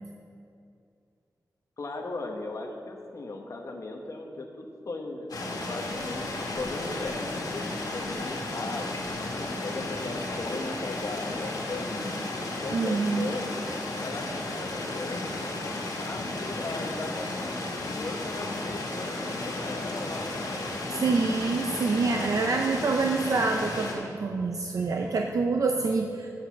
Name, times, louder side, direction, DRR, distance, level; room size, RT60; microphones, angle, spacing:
voice 1, 1.8-5.3 5.7-12.2 12.6-13.5 14.0-15.6 15.9-17.3 17.8-21.2, left 2 dB, 55° left, 2 dB, 1.1 m, -37 dB
sound 1, 5.3-23.9, left 2 dB, 85° left, 1.7 m, -34 dB
voice 2, 12.7-13.3 20.9-26.3, right 4 dB, 60° right, 2 dB, 0.5 m, -26 dB
7.7 x 6.6 x 7.2 m, 2.5 s
wide cardioid pair, 140°, 7 cm